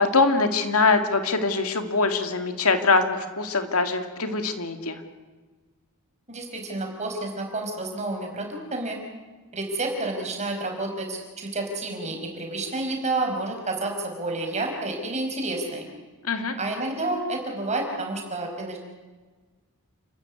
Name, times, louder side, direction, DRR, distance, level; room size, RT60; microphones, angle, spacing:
voice 1, 0.0-5.0 16.2-16.5, left 3 dB, 70° left, 7 dB, 2.3 m, -23 dB
voice 2, 6.3-9.0 9.5-15.9 16.6-18.8, right 2 dB, 30° right, 2 dB, 5.3 m, -30 dB
29.5 x 13.5 x 9.8 m, 1.3 s
head